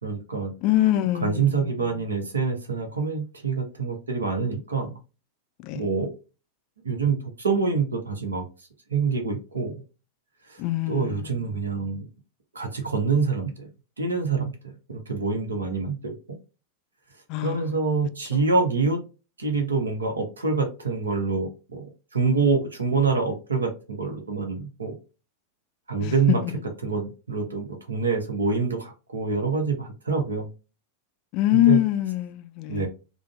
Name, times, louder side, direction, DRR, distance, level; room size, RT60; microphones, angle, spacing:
voice 1, 0.0-0.5 1.2-4.9 5.7-6.1 6.8-8.4 8.9-9.7 10.5-10.6 10.9-12.1 12.5-13.7 14.0-14.5 14.9-16.1 17.4-19.0 19.4-24.9 25.9-26.4 26.8-30.5 31.5-31.8 32.7-32.9, right 4 dB, 75° right, 0.8 m, -26 dB
voice 2, 0.6-1.7 5.6-5.8 10.6-11.2 17.3-17.7 18.3-18.4 26.0-26.1 26.4-26.5 31.3-32.9, left 14 dB, 40° left, 0.3 m, -24 dB
3.7 x 2.0 x 2.3 m
figure-of-eight pair, 90°, 0 cm